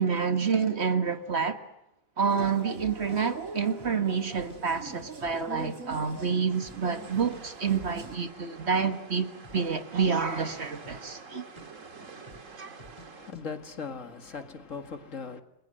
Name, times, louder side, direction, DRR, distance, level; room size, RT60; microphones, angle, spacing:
voice 1, 0.0-1.6 2.2-11.5 12.6-12.7, right 5 dB, 50° right, 1.9 m, -28 dB
sound 1, 2.3-8.2, right 4 dB, 90° right, 2.5 m, -43 dB
sound 2, 2.4-2.6 3.1-3.2 3.7-4.0 4.3-5.0 5.2-6.0 6.3-6.4 6.6-7.4 7.7-7.8 8.0-8.3 8.5-8.8 9.4-9.7 9.9-10.2 10.5-11.3 11.6-11.7 12.2-12.5 12.8-13.1 13.3-13.4, left 1 dB, 25° left, 3.7 m, -51 dB
sound 3, 6.5-13.3, right 4 dB, 70° right, 2.4 m, -47 dB
voice 2, 13.1-15.4, left 5 dB, 70° left, 2.2 m, -39 dB
29.5 x 22.5 x 7.7 m
omnidirectional pair, 1.4 m